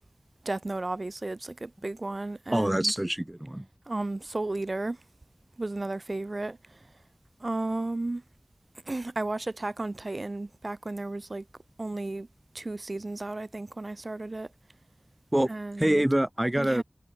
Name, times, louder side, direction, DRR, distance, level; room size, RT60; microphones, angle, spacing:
voice 1, 0.4-2.9 3.9-5.0 5.6-6.8 7.4-8.2 8.9-11.4 11.8-12.3 12.5-14.5 15.5-16.0 16.6-16.8, right 2 dB, 60° right, 6.0 m, -33 dB
voice 2, 2.5-3.7 15.3-15.5 15.8-16.8, right 1 dB, 25° right, 5.9 m, -25 dB
wide cardioid pair, 45°, 0 cm